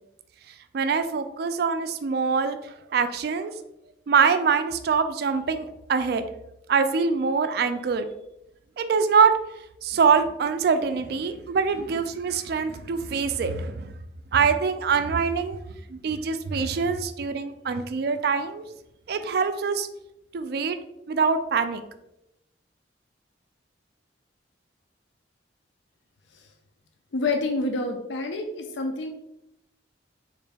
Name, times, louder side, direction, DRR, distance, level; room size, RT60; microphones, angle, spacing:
voice 1, 0.5-3.5 4.1-6.2 6.7-8.1 8.8-9.3 9.8-13.9 14.3-15.6 15.9-18.6 19.1-19.9 20.3-20.8 21.1-21.8, right 5 dB, 55° right, 9 dB, 0.3 m, -24 dB
voice 2, 27.1-29.1, left 2 dB, 75° left, 4 dB, 0.4 m, -28 dB
3.9 x 2.6 x 3.3 m, 0.84 s
head